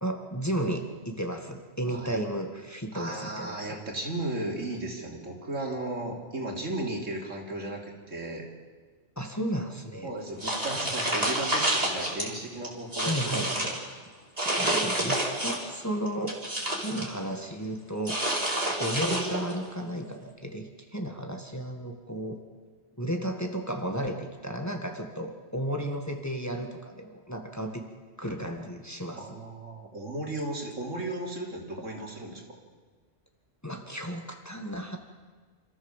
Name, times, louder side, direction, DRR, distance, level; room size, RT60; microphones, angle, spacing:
voice 1, 0.0-3.8 9.2-10.1 13.1-13.8 14.4-16.4 16.8-18.2 18.8-22.4 23.0-27.8 28.2-29.4 31.8-31.9 33.6-35.0, right 1 dB, 15° left, 3 dB, 1.8 m, -33 dB
voice 2, 1.9-2.2 2.9-8.5 10.0-13.8 29.2-32.4, right 2 dB, 90° right, 0 dB, 3.5 m, -35 dB
sound 1, 10.4-12.3 12.6-13.8 14.4-15.7 16.1-17.1 18.0-19.6, right 1 dB, 30° right, 3.8 m, -28 dB
27.0 x 14.5 x 7.4 m, 1.5 s
omnidirectional pair, 1.3 m